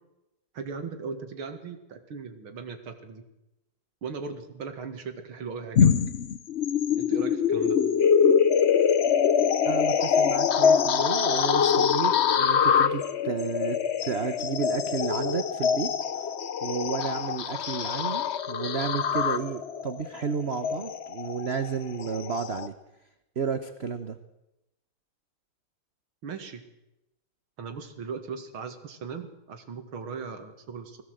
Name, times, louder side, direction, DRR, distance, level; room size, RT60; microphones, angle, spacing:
voice 1, 0.5-3.2 4.0-5.9 7.0-7.8 26.2-26.6 27.6-31.0, right 5 dB, 85° right, 7 dB, 2.8 m, -38 dB
sound 1, 5.7-22.7, left 7 dB, 60° left, 0.7 m, -24 dB
voice 2, 9.6-15.9 16.6-22.7 23.4-24.2, right 6 dB, 45° right, 10 dB, 0.9 m, -32 dB
20.5 x 16.5 x 7.9 m, 0.92 s
omnidirectional pair, 2.2 m